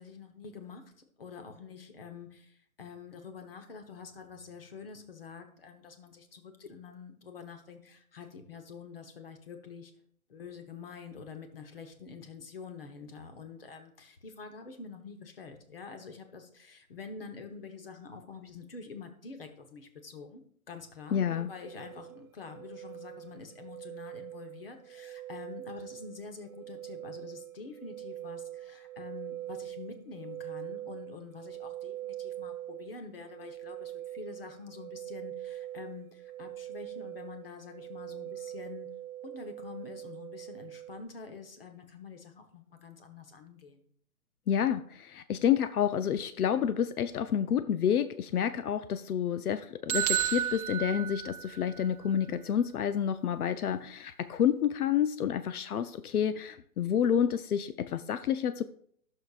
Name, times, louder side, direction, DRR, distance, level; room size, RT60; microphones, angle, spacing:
voice 1, 0.0-9.9 10.3-20.4 20.7-38.9 39.2-43.8, left 5 dB, 40° left, 6 dB, 1.1 m, -47 dB
voice 2, 21.1-21.5 44.5-58.6, left 9 dB, 80° left, 12 dB, 0.6 m, -29 dB
sound 1, 21.6-41.0, right 13 dB, 70° right, 0.9 m, -43 dB
sound 2, 49.9-51.8, right 10 dB, 90° right, 0.5 m, -31 dB
13.5 x 6.6 x 2.4 m, 0.63 s
hypercardioid pair, 180°, 43 cm